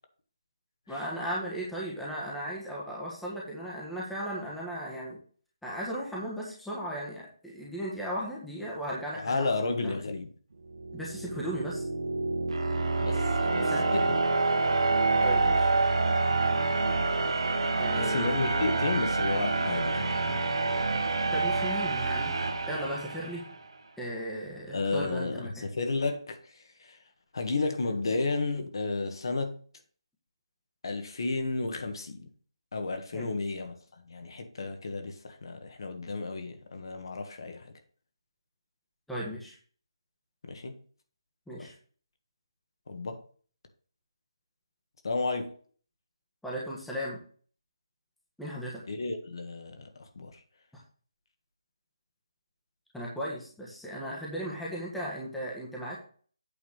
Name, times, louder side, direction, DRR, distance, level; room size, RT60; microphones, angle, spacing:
voice 1, 0.9-5.2 5.6-10.0 10.9-11.8 13.6-13.9 15.2-15.7 17.8-18.6 21.3-22.3 22.7-23.5 24.0-25.6 33.1-33.3 39.1-39.5 41.5-41.7 46.4-47.2 48.4-48.8 50.7-50.8 52.9-56.0, equal, ahead, 1.4 m, -36 dB
voice 2, 9.1-10.3 13.0-13.2 13.5-14.1 17.9-20.5 24.7-27.0 27.3-29.6 30.8-32.3 32.7-37.7 40.4-40.8 41.6-41.7 42.9-43.2 45.0-45.5 48.9-50.4, left 3 dB, 55° left, 1.6 m, -32 dB
sound 1, 10.7-23.6, right 3 dB, 75° right, 1.8 m, -27 dB
8.6 x 3.8 x 6.4 m
hypercardioid pair, 170°, 3 cm